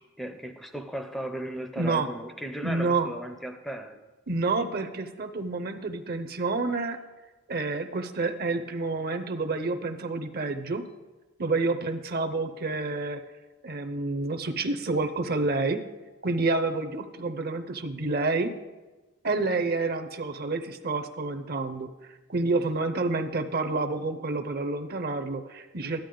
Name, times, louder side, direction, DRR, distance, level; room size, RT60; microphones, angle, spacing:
voice 1, 0.2-4.1, equal, ahead, 6 dB, 0.5 m, -36 dB
voice 2, 1.8-2.1 2.6-3.1 4.3-7.0 7.5-10.8 11.4-13.2 13.6-15.8 16.2-18.5 19.2-21.9 22.3-26.0, right 3 dB, 45° right, 8 dB, 0.7 m, -28 dB
13.0 x 10.5 x 3.8 m, 1.2 s
head